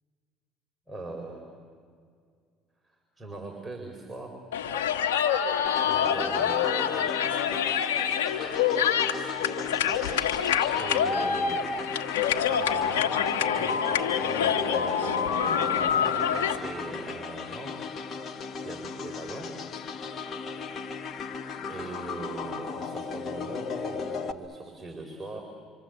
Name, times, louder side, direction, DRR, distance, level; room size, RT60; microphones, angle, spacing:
voice 1, 0.9-1.6 2.8-4.4 5.8-7.7 10.7-11.8 12.5-17.9 18.6-19.5 21.7-25.4, right 2 dB, 15° right, 0 dB, 4.7 m, -41 dB
sound 1, 4.5-16.6, left 8 dB, 90° left, 1.6 m, -26 dB
sound 2, 5.7-24.3, left 4 dB, 50° left, 1.7 m, -36 dB
28.0 x 26.0 x 8.1 m, 2.1 s
hypercardioid pair, 70°, 0 cm